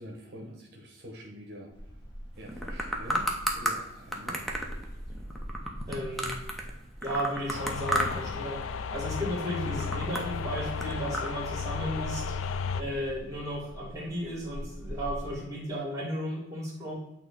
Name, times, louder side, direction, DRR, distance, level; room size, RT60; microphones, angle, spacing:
voice 1, 0.0-1.7 2.4-4.5, equal, 55° right, -1 dB, 0.9 m, -45 dB
sound 1, 1.7-15.3, equal, 20° left, 1.4 m, -44 dB
sound 2, 2.5-3.8 4.1-6.7 7.0-8.4 8.6-9.1 9.5-11.3, equal, ahead, 0.7 m, -32 dB
voice 2, 5.9-6.4 7.0-8.6 8.9-16.9, equal, 15° right, -1 dB, 2.1 m, -34 dB
sound 3, 7.5-12.8, left 6 dB, 80° left, 0.4 m, -34 dB
8.4 x 2.9 x 4.0 m, 0.91 s
head